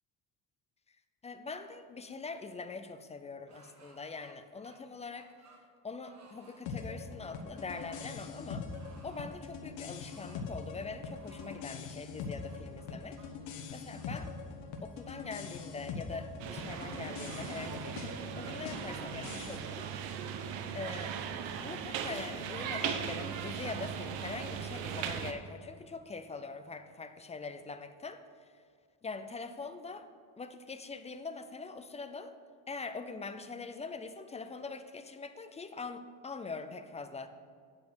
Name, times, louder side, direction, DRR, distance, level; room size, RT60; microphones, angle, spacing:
voice 1, 1.2-5.3 5.8-8.7 9.0-13.2 13.7-14.3 14.8-19.8 20.7-21.2 21.6-28.2 29.0-30.1 30.4-32.3 32.7-37.3, left 4 dB, 15° left, 10 dB, 0.3 m, -43 dB
sound 1, 3.5-4.3 4.6-5.6 6.0-6.6 7.5-8.1 8.7-9.4 10.0-10.5 11.1-11.7 12.4-13.3 13.9-14.3 15.0-15.8 16.1-16.2 16.7-17.5 18.1-18.6 19.2-19.4 19.9-20.5, right 4 dB, 35° right, 1.4 m, -61 dB
sound 2, 6.7-19.6, left 5 dB, 80° left, 1.2 m, -43 dB
sound 3, 16.4-25.3, right 7 dB, 85° right, 0.9 m, -38 dB
9.2 x 5.3 x 6.1 m, 2.2 s
cardioid pair, 120°, 43 cm